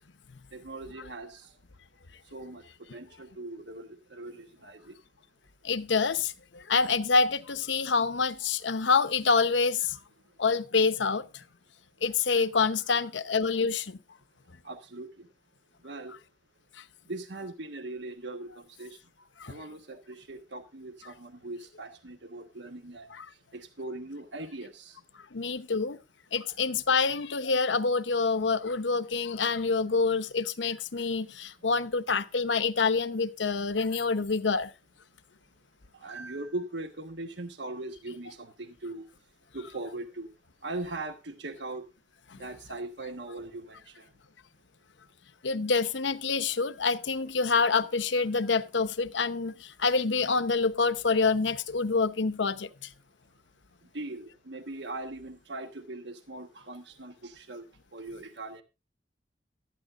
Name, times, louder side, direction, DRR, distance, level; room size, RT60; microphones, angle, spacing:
voice 1, 0.5-1.5 2.3-2.6 2.9-5.0 14.6-15.3 15.8-16.2 17.1-19.0 19.5-23.1 23.5-25.0 35.9-39.1 39.5-40.3 40.6-41.9 42.4-44.1 53.9-57.6 57.9-58.6, right 2 dB, 70° right, 1.3 m, -40 dB
voice 2, 5.6-10.0 10.4-11.2 12.0-14.0 19.4-19.5 23.1-23.3 25.3-26.0 26.3-34.7 42.3-42.4 45.4-52.7, left 4 dB, 85° left, 0.9 m, -27 dB
17.5 x 12.5 x 2.5 m
head